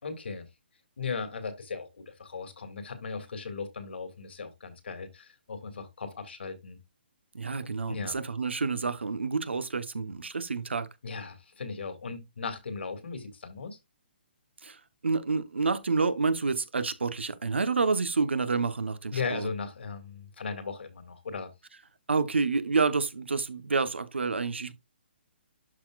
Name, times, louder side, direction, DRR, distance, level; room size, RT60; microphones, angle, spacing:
voice 1, 0.0-0.5 1.0-6.8 7.9-8.2 11.0-13.8 19.1-21.5, left 5 dB, 75° left, 2.3 m, -37 dB
voice 2, 7.3-10.9 14.6-14.8 15.0-19.5 22.1-24.7, right 4 dB, 90° right, 1.1 m, -28 dB
12.0 x 4.1 x 2.5 m
hypercardioid pair, 145°, 6 cm